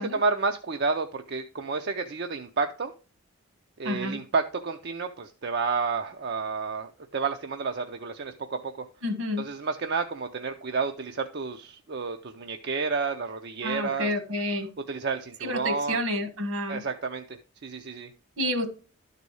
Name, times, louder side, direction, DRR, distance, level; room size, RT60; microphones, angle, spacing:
voice 1, 0.0-2.9 3.8-8.7 9.4-14.1 14.9-16.0 16.7-18.1, right 4 dB, 50° right, 6 dB, 0.5 m, -30 dB
voice 2, 3.8-4.2 9.0-9.4 13.6-14.7 15.4-16.8 18.4-18.7, left 1 dB, 70° right, 8 dB, 1.4 m, -29 dB
11.5 x 4.1 x 4.7 m, 0.35 s
head